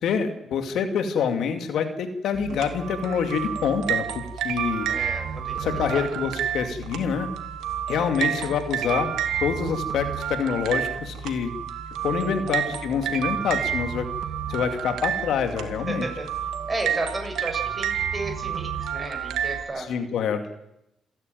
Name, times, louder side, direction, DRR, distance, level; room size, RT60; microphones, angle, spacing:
voice 1, 0.0-4.9 5.5-7.3 7.9-9.1 9.4-11.5 12.0-14.1 14.5-16.1 19.8-20.4, left 6 dB, 75° left, 7 dB, 2.4 m, -26 dB
sound 1, 2.3-19.6, right 9 dB, 85° right, 2.1 m, -30 dB
voice 2, 4.9-6.0 8.2-8.5 12.1-12.7 15.9-16.3 16.7-19.9, right 2 dB, 20° right, 3 dB, 7.1 m, -33 dB
27.0 x 10.5 x 9.3 m, 0.84 s
cardioid pair, 90°, 0 cm